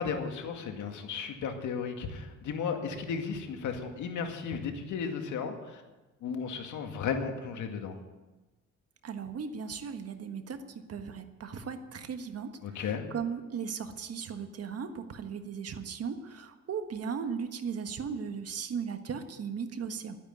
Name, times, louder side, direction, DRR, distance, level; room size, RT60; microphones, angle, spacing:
voice 1, 0.0-5.8 6.2-8.0 12.6-13.0, left 6 dB, 75° left, 4 dB, 2.1 m, -34 dB
voice 2, 9.0-10.6 10.9-12.8 13.1-20.2, right 6 dB, 55° right, 8 dB, 1.5 m, -37 dB
12.0 x 10.0 x 9.3 m, 1.1 s
cardioid pair, 90°, 30 cm